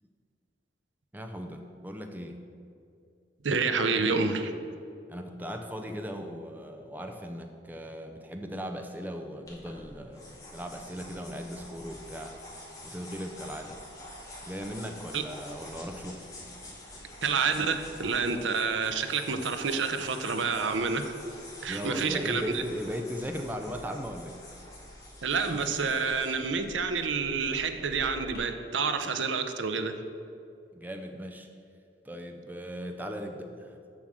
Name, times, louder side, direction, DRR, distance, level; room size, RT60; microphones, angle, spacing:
voice 1, 1.1-2.4 5.1-12.3 12.8-13.8 14.4-16.3 21.7-24.4 30.7-31.5 32.0-33.8, equal, 10° right, 4 dB, 0.6 m, -38 dB
voice 2, 3.4-4.5 15.1-15.2 17.2-21.2 21.6-22.6 25.2-30.0, right 5 dB, 85° right, 8 dB, 0.7 m, -28 dB
sound 1, 9.5-28.4, left 1 dB, 20° left, 2.2 m, -47 dB
7.2 x 6.5 x 7.5 m, 2.5 s
head